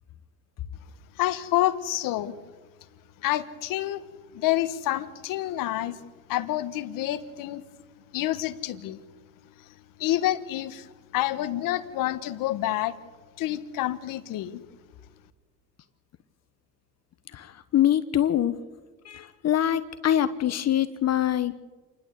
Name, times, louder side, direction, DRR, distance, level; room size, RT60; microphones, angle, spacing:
voice 1, 1.2-2.3 3.2-4.0 4.3-6.0 6.3-7.6 8.1-9.0 9.6-12.9 13.4-14.6, left 14 dB, 75° left, 11 dB, 1.4 m, -28 dB
voice 2, 17.7-18.6 19.1-21.5, left 11 dB, 50° left, 11 dB, 1.1 m, -24 dB
27.5 x 11.5 x 8.2 m, 1.3 s
cardioid pair, 100°, 33 cm